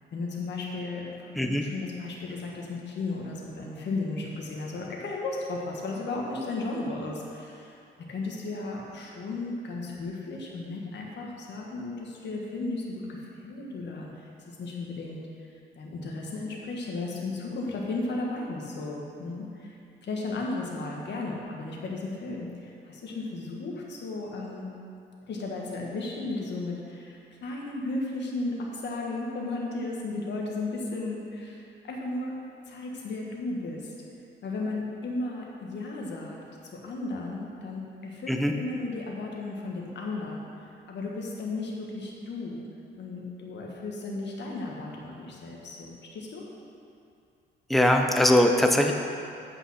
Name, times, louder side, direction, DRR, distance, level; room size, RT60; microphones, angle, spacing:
voice 1, 0.1-7.8 8.1-14.1 14.5-15.2 15.7-19.8 20.0-24.7 25.3-32.3 32.7-33.9 34.4-36.4 36.6-40.4 40.9-42.6 43.0-46.5, left 2 dB, 60° left, -2 dB, 1.6 m, -34 dB
voice 2, 38.3-38.6 47.7-48.9, left 1 dB, ahead, 3 dB, 0.7 m, -21 dB
8.5 x 5.4 x 5.7 m, 2.5 s
cardioid pair, 90°, 20 cm